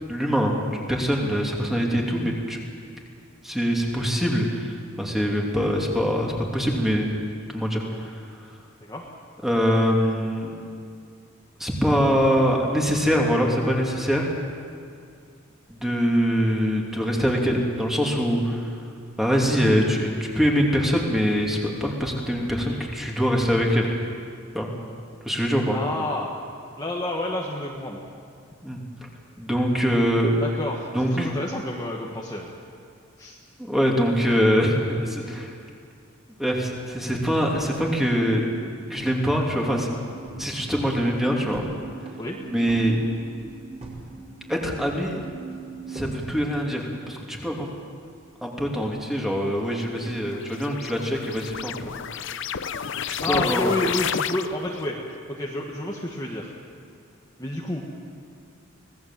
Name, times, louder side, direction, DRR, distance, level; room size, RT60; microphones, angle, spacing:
voice 1, 0.1-2.6 3.4-7.1 7.5-8.5 9.4-10.5 11.6-14.3 15.7-18.7 19.2-23.9 24.5-24.7 25.2-25.8 28.6-28.8 29.4-30.4 30.9-31.3 33.7-35.5 36.4-38.5 38.9-39.9 40.4-41.7 42.5-43.0 44.5-45.3 45.9-47.7 48.4-51.9 53.1-53.7, equal, ahead, -1 dB, 2.9 m, -23 dB
voice 2, 8.8-9.2 25.7-26.3 26.8-28.0 30.4-32.5 33.2-33.4 42.2-42.4 53.2-55.0 55.3-56.5 57.4-57.8, left 1 dB, 20° left, -2 dB, 1.6 m, -29 dB
sound 1, 37.6-39.3 39.6-39.7 40.0-40.5 40.9-41.7 42.0-44.1 44.3-45.0 45.5-46.2, right 1 dB, 30° right, 5.0 m, -43 dB
sound 2, 38.0-47.9, right 5 dB, 45° right, 7.8 m, -43 dB
sound 3, 49.9-54.8, left 7 dB, 60° left, 0.7 m, -30 dB
25.5 x 18.5 x 7.6 m, 2.4 s
head